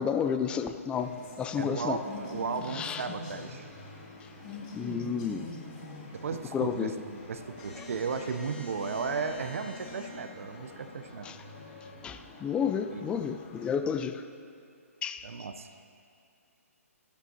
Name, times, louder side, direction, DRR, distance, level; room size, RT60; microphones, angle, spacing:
voice 1, 0.0-2.0 2.7-3.0 4.7-5.5 6.5-7.0 11.2-11.4 12.0-14.2 15.0-15.3, left 7 dB, 10° left, 9 dB, 0.4 m, -31 dB
sound 1, 1.0-13.7, left 3 dB, 35° left, 2.7 m, -45 dB
voice 2, 1.6-3.7 6.1-11.3 12.9-13.0 15.2-15.7, right 5 dB, 65° right, 8 dB, 0.7 m, -35 dB
16.5 x 13.0 x 2.8 m, 2.5 s
figure-of-eight pair, 130°, 8 cm